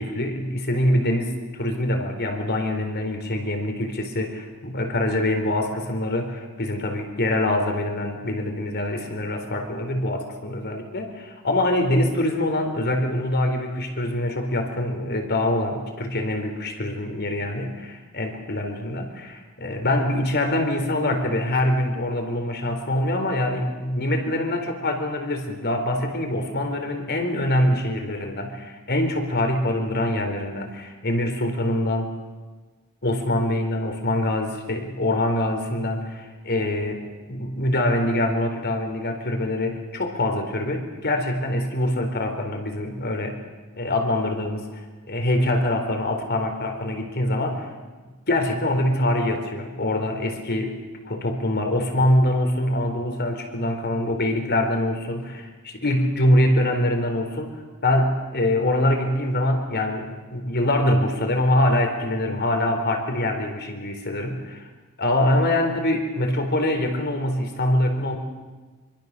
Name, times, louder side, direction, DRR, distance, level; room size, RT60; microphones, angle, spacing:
voice 1, 0.0-32.1 33.0-43.4 43.8-44.7 45.1-47.7 48.3-50.7 51.0-57.5 57.8-64.7 65.0-68.2, left 1 dB, 50° left, 5 dB, 4.2 m, -24 dB
25.5 x 25.0 x 6.8 m, 1.3 s
head